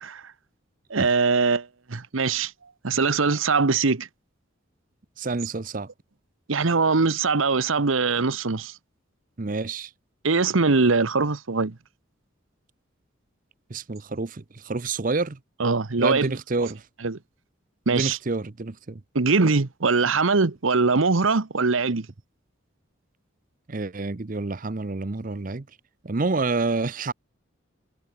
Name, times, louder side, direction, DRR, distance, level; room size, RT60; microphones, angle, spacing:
voice 1, 0.9-2.5 2.8-4.1 6.5-8.7 10.2-11.8 15.6-16.3 17.0-17.2 17.9-18.2 19.1-22.1, right 4 dB, 80° right, 1.0 m, -22 dB
voice 2, 5.2-5.9 9.4-9.9 13.7-15.4 16.0-16.9 17.9-19.0 23.7-25.6 26.0-27.1, right 3 dB, 40° right, 0.7 m, -28 dB
head